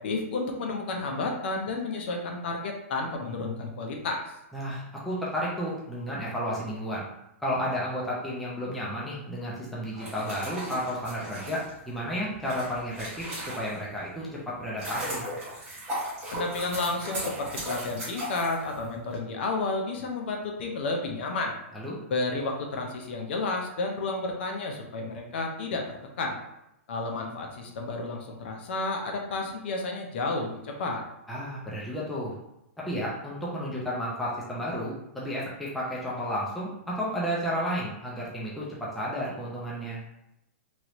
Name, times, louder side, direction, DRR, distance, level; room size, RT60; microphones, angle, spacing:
voice 1, 0.0-4.2 16.3-21.5 22.1-25.8 26.2-26.4 26.9-31.0, left 3 dB, 50° left, 2 dB, 0.6 m, -31 dB
voice 2, 4.5-7.0 7.4-15.2 21.7-22.0 31.3-32.3 32.8-40.0, equal, ahead, -7 dB, 0.4 m, -32 dB
sound 1, 9.9-14.0 14.5-19.2, equal, 15° right, 1.1 m, -37 dB
3.1 x 2.5 x 2.9 m, 0.84 s
supercardioid pair, 170°, 8 cm